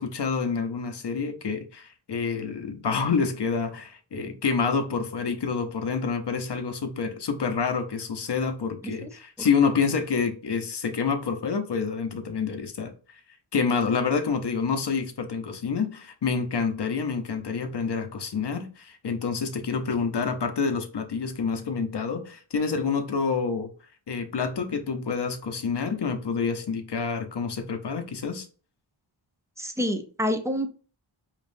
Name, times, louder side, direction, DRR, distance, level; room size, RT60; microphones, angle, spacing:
voice 1, 0.0-12.9 13.5-23.7 24.1-28.5, left 5 dB, 55° left, 0.8 m, -28 dB
voice 2, 29.6-30.7, equal, 5° right, 0.5 m, -28 dB
5.1 x 2.5 x 2.6 m
wide cardioid pair, 80°, 48 cm